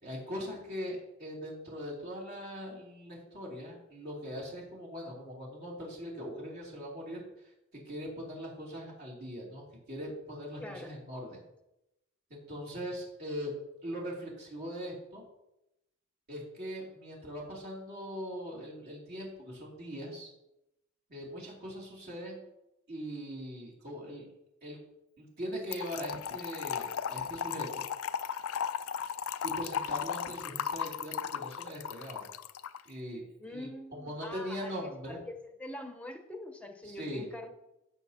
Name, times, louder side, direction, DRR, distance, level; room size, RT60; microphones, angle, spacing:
voice 1, 0.0-7.2 7.9-11.4 12.3-15.2 16.3-20.3 21.1-22.4 22.9-24.3 24.6-24.8 25.2-27.8 29.4-32.3 32.9-35.2 36.8-37.3, equal, 50° right, -4 dB, 2.8 m, -41 dB
voice 2, 10.6-10.9 33.4-34.8 35.1-37.5, left 1 dB, 5° left, 4 dB, 0.8 m, -44 dB
Trickle dribble / Fill (with liquid), 25.7-32.8, left 8 dB, 90° left, 0.4 m, -36 dB
16.0 x 6.1 x 2.8 m, 0.90 s
head